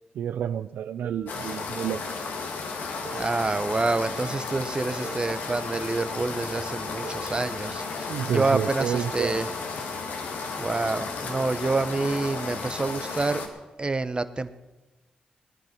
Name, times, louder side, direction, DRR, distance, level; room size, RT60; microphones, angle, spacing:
voice 1, 0.1-2.0 8.1-9.5, right 9 dB, 85° right, 0.4 m, -29 dB
sound 1, 1.0-2.2 3.0-4.2 5.0-6.2 7.0-8.2, right 2 dB, 50° right, 1.6 m, -46 dB
sound 2, 1.3-13.5, left 4 dB, 85° left, 1.9 m, -34 dB
voice 2, 3.1-9.5 10.6-13.4 13.8-14.6, right 3 dB, 30° right, 1.0 m, -27 dB
19.0 x 10.5 x 6.0 m
supercardioid pair, 50°, 3 cm